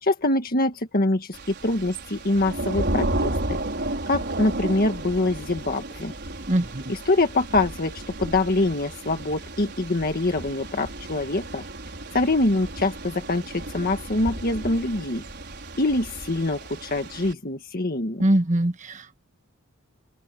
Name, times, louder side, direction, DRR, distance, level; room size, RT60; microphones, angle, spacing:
voice 1, 0.0-3.6 4.1-6.1 6.9-11.6 12.1-15.2 15.8-18.2, left 2 dB, 45° left, 1.7 m, -24 dB
Thunder / Rain, 1.3-17.3, right 1 dB, 50° right, 5.4 m, -33 dB
voice 2, 6.5-6.8 18.2-19.2, right 1 dB, 35° right, 1.5 m, -22 dB
open air
head